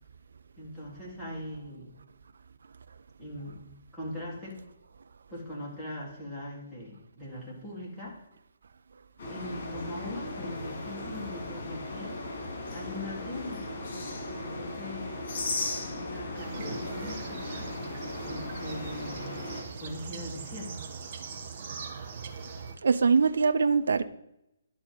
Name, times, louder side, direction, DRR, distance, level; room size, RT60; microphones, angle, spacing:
voice 1, 0.6-1.9 3.2-3.6 3.9-4.6 5.3-8.1 9.3-12.2 12.7-13.7 14.4-15.1 16.0-17.7 18.3-19.4 19.8-20.9, left 1 dB, 5° left, 3.3 m, -41 dB
sound 1, 9.2-19.6, left 2 dB, 45° left, 4.0 m, -37 dB
sound 2, 16.3-22.7, right 5 dB, 40° right, 1.2 m, -41 dB
voice 2, 22.8-24.1, right 5 dB, 60° right, 0.6 m, -23 dB
11.0 x 4.3 x 7.4 m
figure-of-eight pair, 135°, 0 cm